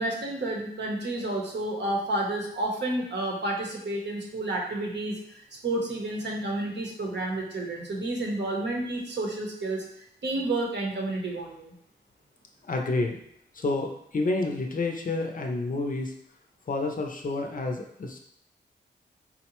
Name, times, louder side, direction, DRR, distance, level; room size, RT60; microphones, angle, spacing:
voice 1, 0.0-5.2 5.6-9.8 10.2-11.7, right 2 dB, 65° right, -1 dB, 0.8 m, -30 dB
voice 2, 12.7-13.2 13.5-16.1 16.7-18.2, left 2 dB, 45° left, 3 dB, 0.5 m, -29 dB
3.8 x 2.1 x 2.9 m, 0.70 s
cardioid pair, 60°, 20 cm